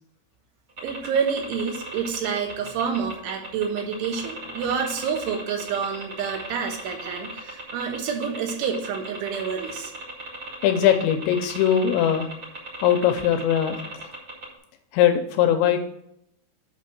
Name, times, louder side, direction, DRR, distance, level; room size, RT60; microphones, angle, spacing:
sound 1, 0.8-14.6, right 2 dB, 45° right, 1.6 m, -37 dB
voice 1, 0.8-9.9, right 6 dB, 75° right, 4 dB, 3.3 m, -28 dB
voice 2, 10.6-12.3 12.8-14.1 14.9-15.8, left 10 dB, 85° left, 7 dB, 2.6 m, -21 dB
7.5 x 5.8 x 5.8 m, 0.76 s
omnidirectional pair, 5.8 m